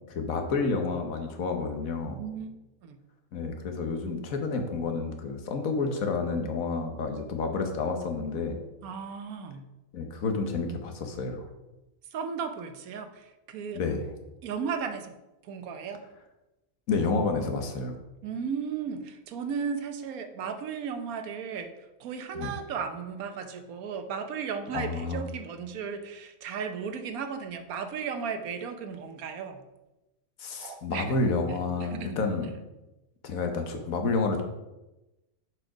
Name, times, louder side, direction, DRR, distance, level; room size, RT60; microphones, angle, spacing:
voice 1, 0.1-2.2 3.3-8.6 9.9-11.5 13.7-14.1 16.9-17.9 22.3-22.5 24.7-25.3 30.4-32.5 33.2-34.4, left 4 dB, 75° left, 5 dB, 1.4 m, -30 dB
voice 2, 2.2-2.5 2.8-3.0 8.8-9.7 12.1-13.8 14.4-15.1 15.4-16.0 18.2-29.6 30.6-31.1 31.9-32.2, right 6 dB, 85° right, 8 dB, 1.2 m, -35 dB
6.8 x 4.7 x 4.9 m, 1.0 s
omnidirectional pair, 1.5 m